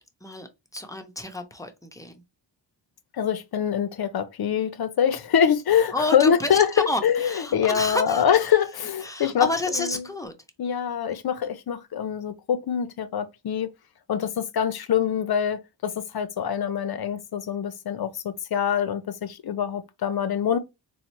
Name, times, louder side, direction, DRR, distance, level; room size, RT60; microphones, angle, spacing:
voice 1, 0.2-2.2 5.9-8.4 9.0-10.3, left 1 dB, 5° left, 0.6 m, -30 dB
voice 2, 3.1-9.5 9.8-10.0 10.6-13.7 14.1-20.6, left 8 dB, 55° left, 0.5 m, -24 dB
4.0 x 2.1 x 2.9 m
wide cardioid pair, 100°, 46 cm